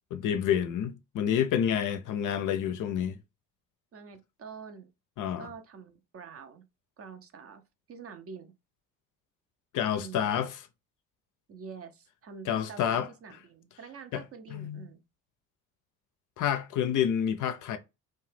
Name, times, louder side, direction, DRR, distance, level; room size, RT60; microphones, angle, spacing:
voice 1, 0.1-3.2 5.2-5.5 9.7-10.6 12.5-13.1 14.1-14.2 14.5-14.9 16.4-17.8, left 9 dB, 45° left, 0.5 m, -28 dB
voice 2, 3.9-4.9 5.4-6.6 7.0-7.6 7.9-8.5 9.9-10.5 11.5-15.0, right 6 dB, 35° right, 0.5 m, -46 dB
2.7 x 2.2 x 3.1 m
hypercardioid pair, 50°, 44 cm